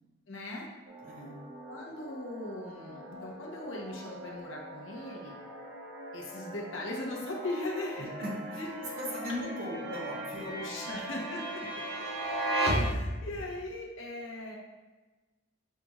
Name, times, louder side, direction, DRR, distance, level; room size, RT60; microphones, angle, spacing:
voice 1, 0.3-0.7 1.7-5.4 6.1-8.1 8.6-8.9 10.4-11.6 12.5-14.6, left 2 dB, 80° left, -1 dB, 0.9 m, -39 dB
sound 1, 0.9-13.5, right 1 dB, 65° right, 0.7 m, -37 dB
voice 2, 1.0-1.4 8.0-10.5 10.8-10.9, left 1 dB, 45° right, -3 dB, 1.0 m, -39 dB
6.7 x 2.4 x 3.0 m, 1.2 s
head